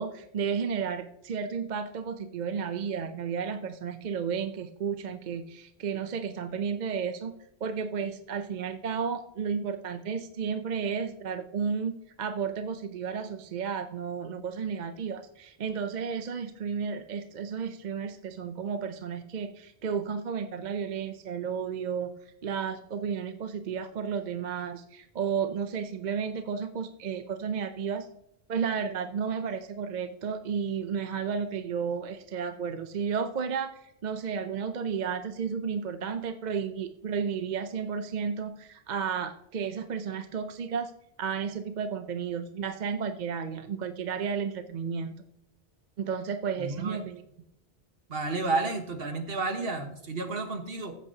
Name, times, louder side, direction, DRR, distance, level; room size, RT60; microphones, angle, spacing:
voice 1, 0.0-7.4 7.6-22.1 22.4-28.1 28.5-40.9 41.2-45.2 46.0-47.2, right 6 dB, 50° right, 8 dB, 0.7 m, -32 dB
voice 2, 46.6-47.0 48.1-51.0, right 3 dB, 65° right, 5 dB, 1.6 m, -31 dB
15.0 x 8.2 x 2.8 m, 0.77 s
omnidirectional pair, 1.1 m